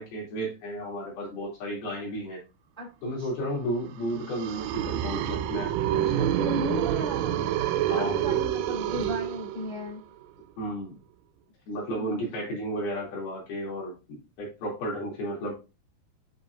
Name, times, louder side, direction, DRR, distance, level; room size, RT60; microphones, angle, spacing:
voice 1, 0.0-2.4 3.0-6.8 7.9-8.4 10.6-11.0 11.7-15.5, equal, 55° left, -3 dB, 4.1 m, -33 dB
sound 1, 4.0-9.9, right 11 dB, 90° right, 3.2 m, -28 dB
voice 2, 6.4-7.5 7.9-10.0 11.9-12.3, left 1 dB, ahead, -7 dB, 3.1 m, -36 dB
8.0 x 5.9 x 2.5 m, 0.29 s
omnidirectional pair, 5.7 m